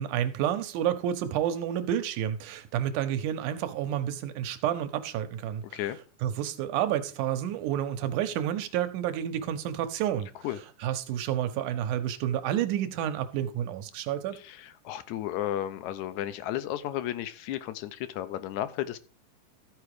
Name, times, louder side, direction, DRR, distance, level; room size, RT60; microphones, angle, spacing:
voice 1, 0.0-5.6 6.2-10.3 10.8-14.4, right 10 dB, 80° right, 2.4 m, -30 dB
voice 2, 14.3-19.0, left 12 dB, 75° left, 2.0 m, -33 dB
14.0 x 4.8 x 4.8 m
omnidirectional pair, 3.6 m